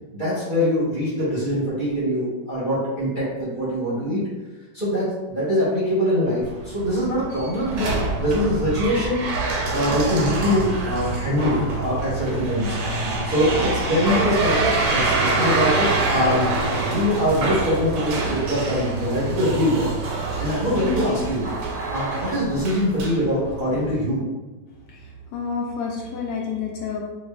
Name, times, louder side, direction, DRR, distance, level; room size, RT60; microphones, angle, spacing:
voice 1, 0.1-4.2 4.7-7.9 8.2-9.2 9.7-12.8 13.2-19.8 20.4-21.5 21.9-24.2, equal, 35° right, -9 dB, 0.8 m, -23 dB
sound 1, 6.4-23.9, right 3 dB, 75° right, 1.3 m, -26 dB
voice 2, 20.8-21.2 25.3-27.0, left 5 dB, 75° left, -1 dB, 1.2 m, -28 dB
5.0 x 2.3 x 2.2 m, 1.2 s
omnidirectional pair, 1.9 m